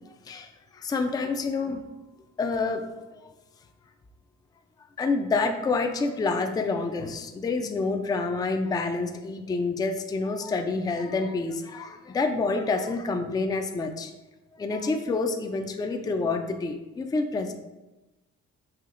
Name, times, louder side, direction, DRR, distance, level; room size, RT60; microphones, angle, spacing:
voice 1, 0.1-1.8 2.4-2.8 3.1-3.3 5.0-14.1 14.6-17.5, left 3 dB, 15° left, 5 dB, 0.3 m, -28 dB
5.7 x 2.8 x 2.5 m, 1.0 s
cardioid pair, 90°, 30 cm